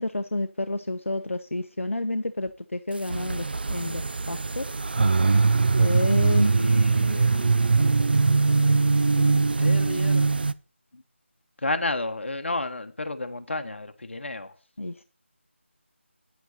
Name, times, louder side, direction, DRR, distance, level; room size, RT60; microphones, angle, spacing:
voice 1, 0.0-4.7 5.8-6.5 14.8-15.0, left 2 dB, 90° left, 0.8 m, -30 dB
sound 1, 3.1-10.5, right 4 dB, 50° right, 0.4 m, -21 dB
voice 2, 6.3-7.9 9.1-10.3 10.9-11.0 11.6-14.5, left 2 dB, 65° left, 1.4 m, -32 dB
9.5 x 8.1 x 4.3 m
figure-of-eight pair, 170°, 7 cm